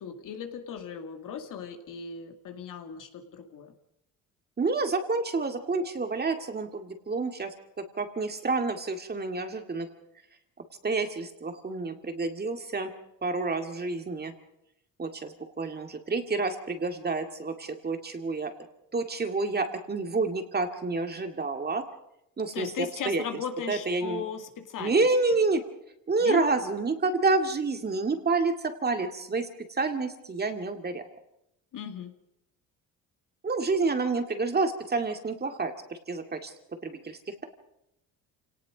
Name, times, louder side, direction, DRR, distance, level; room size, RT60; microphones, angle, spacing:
voice 1, 0.0-3.7 22.5-25.1 26.2-26.4 31.7-32.1, left 7 dB, 65° left, 5 dB, 2.4 m, -37 dB
voice 2, 4.6-7.5 8.0-9.9 10.8-12.9 13.2-14.3 15.0-18.5 18.9-21.9 22.4-23.2 23.7-24.2 24.8-25.6 26.1-31.0 33.4-36.5 36.8-37.4, right 3 dB, 25° right, 6 dB, 2.1 m, -29 dB
27.5 x 18.5 x 5.1 m, 0.81 s
cardioid pair, 105°, 35 cm